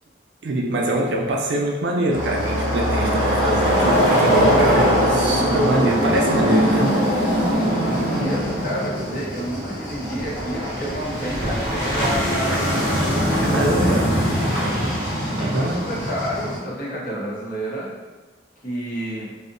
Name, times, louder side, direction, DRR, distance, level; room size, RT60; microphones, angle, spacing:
voice 1, 0.4-6.9 13.5-14.0 15.4-15.8, right 1 dB, 75° right, 0 dB, 0.4 m, -23 dB
sound 1, 2.1-16.6, equal, 80° left, 0.9 m, -21 dB
voice 2, 6.4-7.0 7.5-14.1 14.5-14.8 15.3-17.9 18.6-19.3, equal, 50° left, -6 dB, 0.7 m, -30 dB
2.7 x 2.0 x 2.5 m, 1.3 s
head